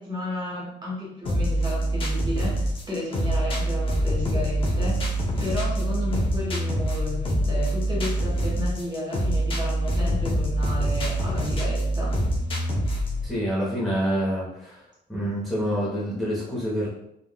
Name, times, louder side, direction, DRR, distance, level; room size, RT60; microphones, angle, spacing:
voice 1, 0.0-5.1 5.4-12.2, left 1 dB, 25° right, -5 dB, 1.0 m, -32 dB
sound 1, 1.3-13.3, right 1 dB, 30° left, 0.6 m, -25 dB
voice 2, 13.2-14.8 15.1-16.9, equal, ahead, -8 dB, 0.9 m, -27 dB
3.6 x 2.3 x 2.2 m, 0.81 s
cardioid pair, 140°, 18 cm